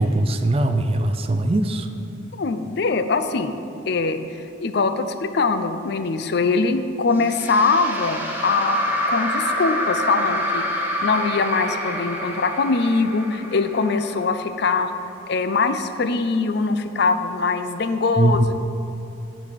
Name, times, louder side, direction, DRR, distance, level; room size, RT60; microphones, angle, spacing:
voice 1, 0.0-1.9 18.2-18.4, right 2 dB, 30° right, 8 dB, 0.4 m, -20 dB
voice 2, 2.4-3.6 3.9-4.2 4.6-8.8 9.1-14.9 15.3-18.6, left 4 dB, 55° left, 9 dB, 0.4 m, -22 dB
sound 1, 7.1-14.4, left 1 dB, 10° right, 0.9 m, -27 dB
10.0 x 4.1 x 6.8 m, 2.9 s
head